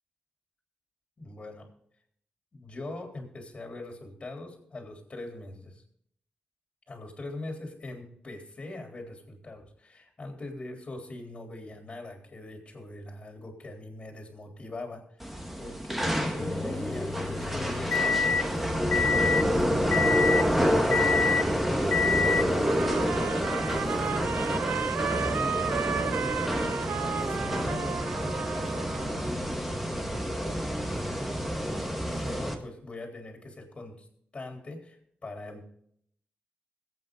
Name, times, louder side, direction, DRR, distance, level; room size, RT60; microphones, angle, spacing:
voice 1, 1.2-1.7 2.5-5.8 6.9-34.1 34.3-35.7, left 2 dB, 30° left, 2 dB, 3.8 m, -42 dB
sound 1, 15.2-32.5, equal, 5° right, 1.7 m, -28 dB
sound 2, 16.4-18.4 18.9-19.4 19.9-20.4 20.9-21.4 21.9-22.4, left 5 dB, 50° left, 0.6 m, -27 dB
Trumpet, 22.5-29.3, right 8 dB, 80° right, 0.6 m, -34 dB
21.5 x 8.5 x 3.9 m, 0.66 s
cardioid pair, 105°, 3 cm